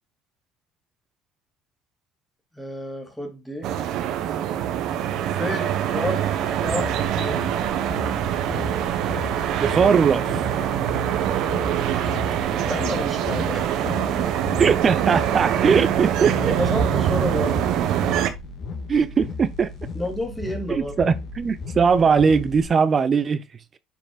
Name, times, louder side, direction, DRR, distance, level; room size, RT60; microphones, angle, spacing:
voice 1, 2.5-3.7 5.3-6.2 6.6-7.4 12.7-14.3 16.4-17.5 19.9-21.0, left 1 dB, ahead, 3.1 m, -30 dB
sound 1, 3.6-18.3, right 10 dB, 65° right, 1.3 m, -24 dB
sound 2, 6.7-22.7, left 3 dB, 50° left, 3.1 m, -36 dB
voice 2, 9.6-10.3 14.6-16.6 18.9-19.7 20.7-23.4, right 6 dB, 35° right, 0.6 m, -20 dB
10.0 x 5.3 x 2.4 m
supercardioid pair, 85°, 0 cm